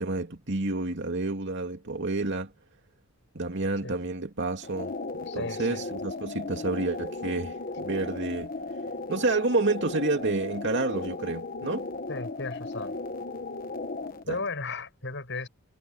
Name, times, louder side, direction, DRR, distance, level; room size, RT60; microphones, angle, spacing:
voice 1, 0.0-2.5 3.3-4.9 5.4-8.5 9.1-11.9 14.3-14.4, right 2 dB, 60° right, 2.6 m, -29 dB
sound 1, 4.6-14.2, left 3 dB, 45° left, 1.2 m, -36 dB
voice 2, 5.3-5.9 12.1-13.0 14.3-15.5, left 3 dB, 60° left, 7.7 m, -35 dB
head